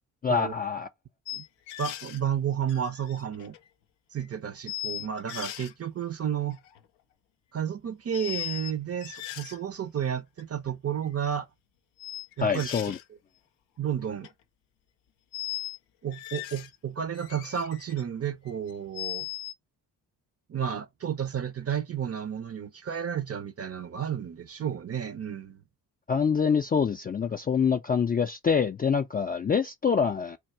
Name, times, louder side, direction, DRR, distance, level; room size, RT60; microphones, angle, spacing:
voice 1, 0.2-0.9 12.4-13.0 26.1-30.4, left 6 dB, 25° left, 0.3 m, -25 dB
sound 1, 1.3-2.2 2.7-3.7 4.2-4.3 4.7-5.7 6.5-6.8 8.1-8.7 9.0-9.6 10.4-10.5 12.0-13.0 14.0-14.3 15.3-15.8 16.1-16.8 17.1-18.0 18.5-19.5, left 13 dB, 90° left, 0.6 m, -38 dB
voice 2, 1.8-3.6 4.1-6.6 7.5-11.5 12.4-12.7 13.8-14.3 16.0-19.3 20.5-25.6, right 8 dB, 35° right, 0.6 m, -32 dB
3.5 x 2.3 x 4.4 m
supercardioid pair, 60°, 44 cm